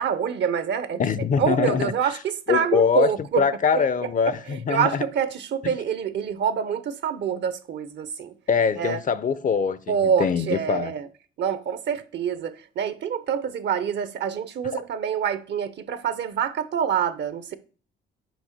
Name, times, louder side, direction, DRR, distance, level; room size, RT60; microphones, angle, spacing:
voice 1, 0.0-1.0 1.4-3.5 3.7-8.3 8.8-9.0 9.9-11.1 11.4-17.5, right 7 dB, 65° right, 0.9 m, -26 dB
voice 2, 1.0-1.9 2.5-3.1 3.4-5.0 8.5-10.9 14.7-14.8, left 6 dB, 40° left, 0.6 m, -23 dB
6.1 x 5.1 x 6.6 m
cardioid pair, 90°, 20 cm